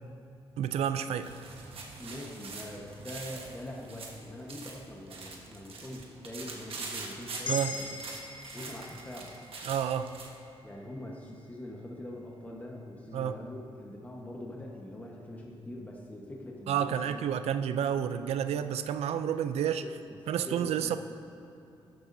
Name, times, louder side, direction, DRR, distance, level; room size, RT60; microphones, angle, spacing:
voice 1, 0.6-1.3 7.5-7.7 9.7-10.1 13.1-13.4 16.7-19.8 20.3-21.0, right 9 dB, 85° right, 11 dB, 0.4 m, -30 dB
sound 1, 0.9-10.4, right 3 dB, 60° right, 1.3 m, -44 dB
voice 2, 2.0-7.9 8.5-9.4 10.6-17.3 19.8-20.2 20.5-21.0, left 1 dB, 15° left, -2 dB, 1.2 m, -43 dB
sound 2, 7.4-11.7, left 3 dB, 50° left, 1.0 m, -42 dB
13.0 x 10.5 x 2.7 m, 2.8 s
cardioid pair, 75°, 10 cm